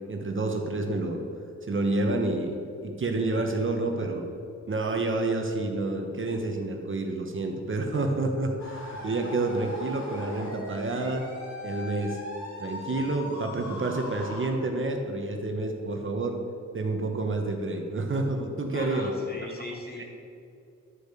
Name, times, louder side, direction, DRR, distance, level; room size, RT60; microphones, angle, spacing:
voice 1, 0.1-1.2 1.7-4.2 4.7-11.2 11.6-12.2 12.6-16.3 16.7-19.1 20.0-20.1, right 2 dB, 45° right, 3 dB, 1.2 m, -29 dB
sound 1, 8.6-14.5, left 1 dB, 65° left, 2.8 m, -39 dB
voice 2, 18.7-20.0, left 1 dB, 30° left, -1 dB, 2.2 m, -39 dB
11.5 x 5.1 x 6.7 m, 2.6 s
cardioid pair, 90°, 29 cm